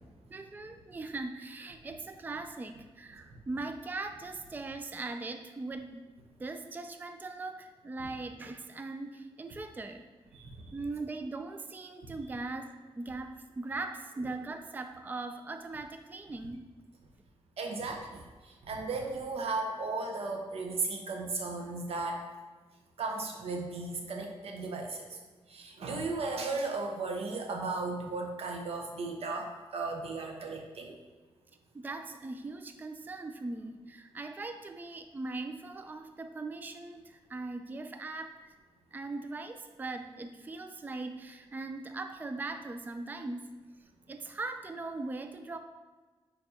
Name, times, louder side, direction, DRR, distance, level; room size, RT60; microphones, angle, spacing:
voice 1, 0.3-6.0 6.4-10.1 10.7-16.7 31.7-38.5 38.9-43.5 44.1-45.6, right 3 dB, 20° right, 7 dB, 0.3 m, -40 dB
voice 2, 17.6-18.2 18.7-22.2 23.0-25.0 25.5-30.9, right 3 dB, 85° right, 2 dB, 0.9 m, -35 dB
6.9 x 5.1 x 2.8 m, 1.3 s
wide cardioid pair, 110°, 10 cm